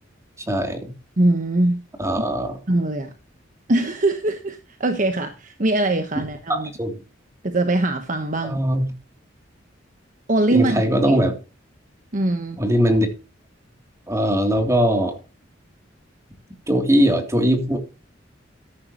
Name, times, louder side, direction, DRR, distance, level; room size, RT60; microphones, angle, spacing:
voice 1, 0.5-0.9 2.0-2.6 6.2-6.3 6.5-6.9 8.4-8.9 10.5-11.3 12.6-13.1 14.1-15.2 16.7-17.8, equal, 15° right, 3.1 m, -20 dB
voice 2, 1.2-1.8 2.7-3.1 3.7-6.7 7.4-8.6 10.3-10.8 12.1-12.6, right 2 dB, 40° right, 1.2 m, -22 dB
14.0 x 10.0 x 3.0 m
head